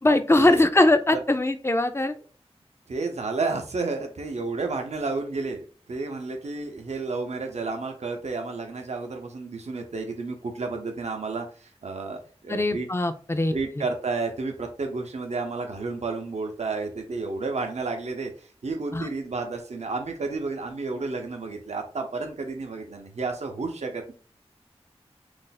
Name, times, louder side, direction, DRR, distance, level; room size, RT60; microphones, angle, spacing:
voice 1, 0.0-2.1 12.5-13.5 18.9-19.1, left 2 dB, 25° left, 9 dB, 0.4 m, -21 dB
voice 2, 2.9-12.9 13.5-24.1, right 3 dB, 85° right, 3 dB, 0.6 m, -31 dB
2.5 x 2.0 x 3.9 m, 0.39 s
wide cardioid pair, 45°, 11 cm